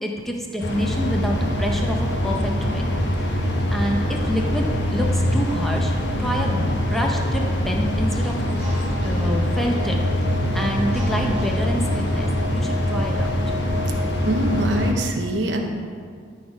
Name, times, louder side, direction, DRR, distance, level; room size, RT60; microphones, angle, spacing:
voice 1, 0.0-2.9 3.2-3.3 3.7-5.9 6.2-6.6 6.9-8.5 9.0-13.4, equal, ahead, 0 dB, 0.8 m, -27 dB
sound 1, 0.6-14.9, left 1 dB, 65° left, 1.1 m, -23 dB
sound 2, 3.9-12.7, equal, 35° right, 2.0 m, -40 dB
voice 2, 14.3-15.6, right 1 dB, 65° right, 2 dB, 0.9 m, -24 dB
13.0 x 4.3 x 5.0 m, 2.1 s
head